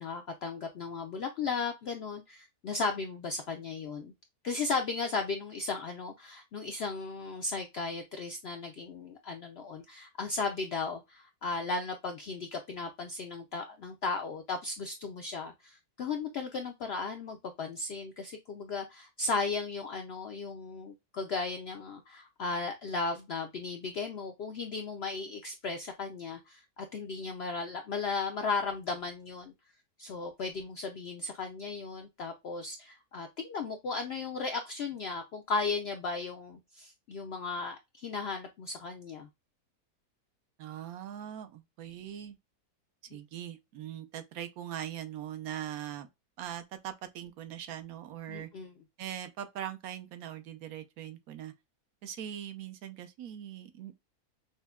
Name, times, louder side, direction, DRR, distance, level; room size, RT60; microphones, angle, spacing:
voice 1, 0.0-4.1 4.4-29.5 30.0-39.3 43.1-43.2 48.3-48.7, left 4 dB, 70° left, 0.6 m, -36 dB
voice 2, 40.6-42.4 43.1-46.1 46.4-48.5 49.0-51.5 52.0-53.9, right 10 dB, 75° right, 1.1 m, -41 dB
5.4 x 2.1 x 2.3 m
omnidirectional pair, 1.6 m